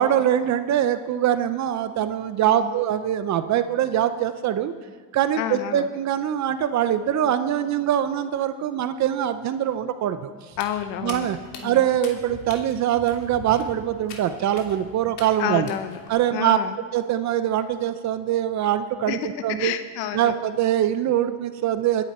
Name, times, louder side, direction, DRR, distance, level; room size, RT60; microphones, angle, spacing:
voice 1, 0.0-4.7 5.1-10.3 11.0-11.4 11.6-15.7 16.1-16.6 16.9-19.7 20.1-22.0, right 10 dB, 35° right, 11 dB, 0.6 m, -23 dB
voice 2, 5.4-5.9 10.6-11.3 11.6-11.8 15.4-16.0 16.3-16.8 19.1-20.3, left 10 dB, 80° left, 10 dB, 1.1 m, -29 dB
Walk footsteps, 10.5-16.1, left 4 dB, 55° left, 3.0 m, -42 dB
22.0 x 11.0 x 4.3 m, 1.5 s
supercardioid pair, 130°, 49 cm